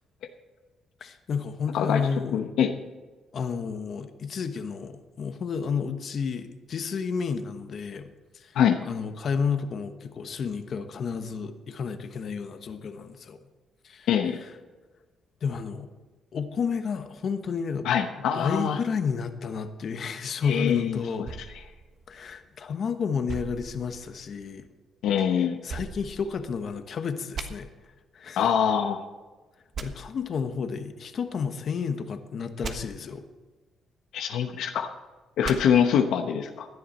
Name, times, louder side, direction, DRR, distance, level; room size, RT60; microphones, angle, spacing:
voice 1, 1.0-2.4 3.3-8.1 8.3-8.6 8.9-13.4 13.8-14.1 14.4-14.5 15.4-15.9 16.3-17.9 18.3-21.3 22.1-24.7 25.4-27.7 28.1-28.4 29.8-33.2, left 6 dB, 55° left, 8 dB, 1.1 m, -31 dB
voice 2, 2.3-2.8 8.5-8.8 14.1-14.4 17.8-18.8 20.4-21.0 25.0-25.6 28.4-29.0 34.1-34.9 35.4-36.7, left 8 dB, 80° left, 5 dB, 1.0 m, -24 dB
sound 1, 21.2-22.7 23.3-24.5 25.7-26.8 27.3-27.5 29.7-29.9 32.6-32.7 35.4-35.6, right 5 dB, 55° right, 1.3 m, -39 dB
17.0 x 11.0 x 4.3 m, 1.3 s
cardioid pair, 90°, 0 cm